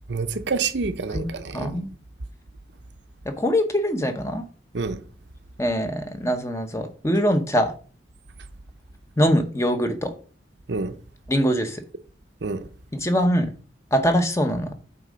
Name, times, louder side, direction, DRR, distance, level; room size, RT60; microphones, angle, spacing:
voice 1, 0.1-1.8 4.7-5.0 10.7-10.9 12.4-12.6, right 4 dB, 70° right, 0.7 m, -27 dB
voice 2, 1.5-1.9 3.2-4.4 5.6-7.7 9.2-10.1 11.3-11.8 12.9-13.5 13.9-14.7, equal, 15° left, 0.8 m, -23 dB
8.5 x 3.7 x 5.1 m
head